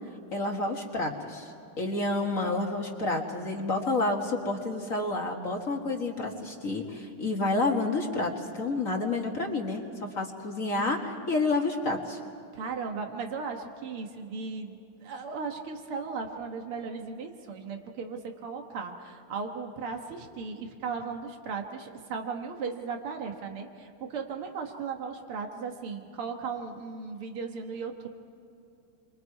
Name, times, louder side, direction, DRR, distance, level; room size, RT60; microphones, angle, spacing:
voice 1, 0.3-12.2, left 2 dB, 40° left, 1 dB, 1.9 m, -29 dB
voice 2, 12.5-28.1, right 5 dB, 85° right, 3 dB, 2.4 m, -36 dB
29.5 x 24.0 x 4.8 m, 2.6 s
omnidirectional pair, 2.3 m